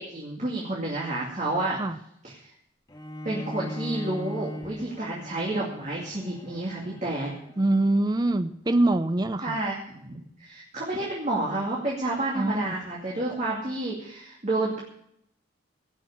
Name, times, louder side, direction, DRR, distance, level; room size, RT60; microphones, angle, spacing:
voice 1, 0.0-1.8 3.2-7.3 9.4-14.8, right 2 dB, 35° right, -4 dB, 2.6 m, -30 dB
Bowed string instrument, 2.9-8.1, left 1 dB, 20° left, 1.6 m, -39 dB
voice 2, 7.6-9.6 12.3-12.8, right 2 dB, 20° right, 11 dB, 0.5 m, -24 dB
17.5 x 6.4 x 8.6 m, 0.72 s
head